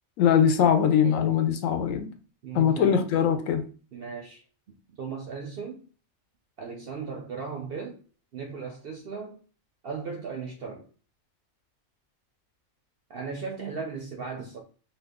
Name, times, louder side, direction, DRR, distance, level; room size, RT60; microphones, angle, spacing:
voice 1, 0.2-2.1 2.5-3.6, left 8 dB, 75° left, 0.9 m, -22 dB
voice 2, 2.4-3.1 3.9-4.4 4.7-5.8 6.6-8.0 8.3-9.4 9.8-10.9 13.1-14.6, right 5 dB, 60° right, 0.6 m, -37 dB
2.7 x 2.1 x 3.5 m
omnidirectional pair, 1.4 m